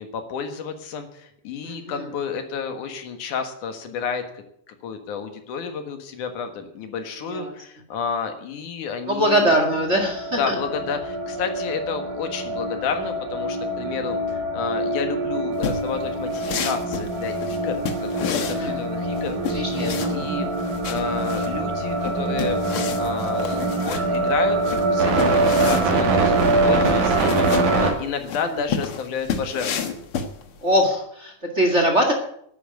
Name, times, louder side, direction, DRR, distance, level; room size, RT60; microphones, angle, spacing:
voice 1, 0.0-9.6 10.4-20.5 20.9-22.6 23.0-24.6 24.9-26.3 26.6-30.1, left 6 dB, 75° left, 7 dB, 3.0 m, -31 dB
voice 2, 1.6-2.1 7.2-7.5 9.1-10.6 18.3-18.8 19.5-20.3 28.4-28.6 30.6-32.1, equal, 25° right, 3 dB, 2.0 m, -22 dB
sound 1, 9.7-27.9, right 2 dB, 70° right, 3.7 m, -24 dB
sound 2, 15.6-30.8, left 6 dB, 55° left, 1.9 m, -31 dB
11.0 x 9.2 x 9.2 m, 0.70 s
omnidirectional pair, 3.5 m